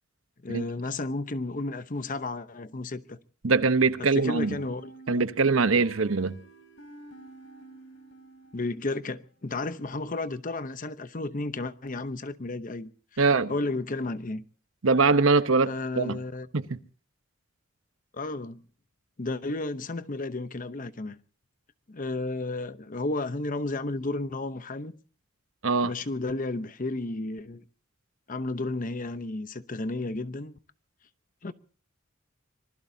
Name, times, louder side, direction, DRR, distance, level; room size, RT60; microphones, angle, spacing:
voice 1, 0.4-3.2 4.0-5.3 8.5-12.9 13.5-14.4 15.7-16.5 18.1-18.6 19.2-21.2 21.9-24.9 25.8-27.6 28.3-30.5 31.4-31.5, left 2 dB, 40° left, 0.9 m, -33 dB
voice 2, 3.4-4.6 5.1-6.4 13.2-13.5 14.8-15.7 16.0-16.2 16.5-16.8 25.6-25.9, right 4 dB, 80° right, 1.0 m, -22 dB
sound 1, 4.4-9.1, right 2 dB, 65° left, 3.2 m, -49 dB
25.5 x 20.5 x 2.8 m
head